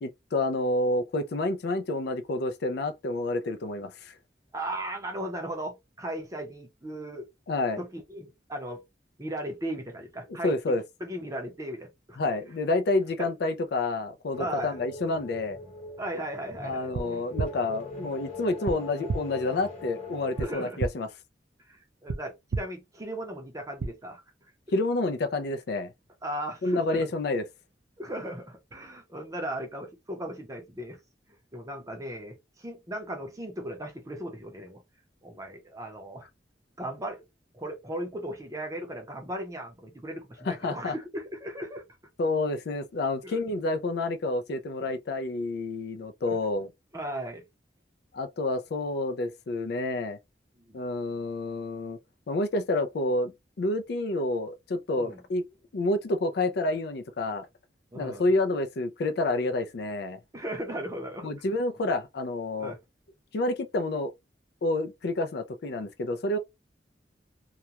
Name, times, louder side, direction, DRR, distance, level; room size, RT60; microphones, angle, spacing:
voice 1, 0.0-4.1 7.5-7.8 10.4-10.8 12.2-15.6 16.6-21.1 24.7-25.9 26.6-27.5 40.5-40.9 42.2-46.7 48.1-50.2 50.7-52.0 52.3-55.4 55.7-57.5 57.9-60.2 61.2-62.7 63.3-64.1 64.6-66.4, left 2 dB, 60° left, 0.4 m, -29 dB
voice 2, 4.5-7.3 7.8-8.8 9.2-10.5 11.0-12.2 13.2-13.3 14.4-14.8 16.0-16.9 20.4-20.8 21.7-24.2 26.2-27.0 28.0-31.0 31.5-34.8 35.2-36.3 36.8-37.2 37.5-41.8 43.2-43.4 46.3-46.4 46.9-47.4 50.7-50.8 55.0-55.2 57.9-58.3 60.3-61.3 62.6-62.8, right 1 dB, 20° right, 0.6 m, -37 dB
sound 1, 14.3-20.5, left 2 dB, 35° left, 1.0 m, -41 dB
sound 2, 16.9-17.0 17.4-17.5 18.7-18.8 19.1-19.2 20.4-20.5 20.8-20.9 22.1-22.2 22.5-22.6 23.8-23.9, right 4 dB, 85° right, 0.4 m, -28 dB
2.3 x 2.1 x 2.8 m
head